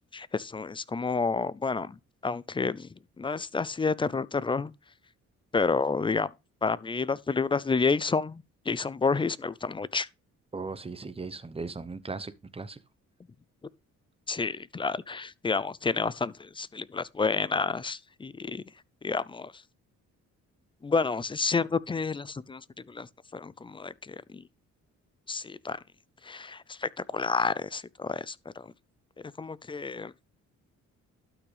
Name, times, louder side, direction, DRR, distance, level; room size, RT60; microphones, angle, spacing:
voice 1, 0.1-2.0 2.2-2.9 3.2-4.7 5.5-6.3 6.6-10.1 14.3-18.6 19.0-19.6 20.8-23.1 23.3-24.4 25.3-25.8 26.2-28.7 29.4-30.1, left 4 dB, 15° left, 0.4 m, -30 dB
voice 2, 10.5-12.8, right 4 dB, 20° right, 0.9 m, -38 dB
12.0 x 6.0 x 3.3 m
cardioid pair, 90°, 30 cm